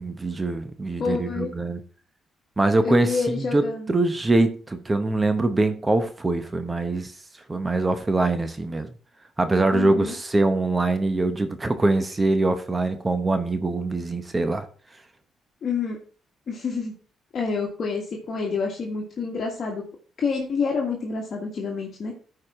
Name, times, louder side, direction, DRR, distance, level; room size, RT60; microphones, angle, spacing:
voice 1, 0.0-1.8 2.6-7.1 7.5-8.9 9.4-14.6, right 2 dB, 20° right, 9 dB, 0.9 m, -23 dB
voice 2, 1.0-1.5 2.8-3.9 9.7-10.1 15.6-16.0 16.5-16.9 17.3-19.9 20.2-22.1, left 5 dB, 50° left, -1 dB, 1.6 m, -28 dB
13.5 x 4.8 x 3.6 m, 0.42 s
cardioid pair, 90°, 0 cm